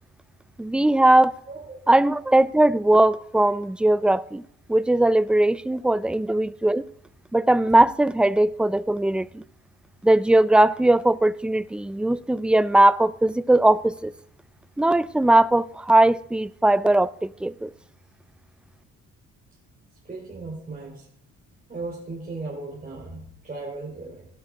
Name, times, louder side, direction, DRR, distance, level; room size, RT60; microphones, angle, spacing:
voice 1, 0.6-1.3 1.9-4.4 4.7-6.8 7.3-9.4 10.0-14.1 14.8-17.7, right 1 dB, 5° right, 0.3 m, -19 dB
voice 2, 1.5-1.8 20.0-21.1 21.7-24.3, right 3 dB, 25° right, 3.0 m, -36 dB
17.0 x 6.1 x 3.7 m
cardioid pair, 90°, 30 cm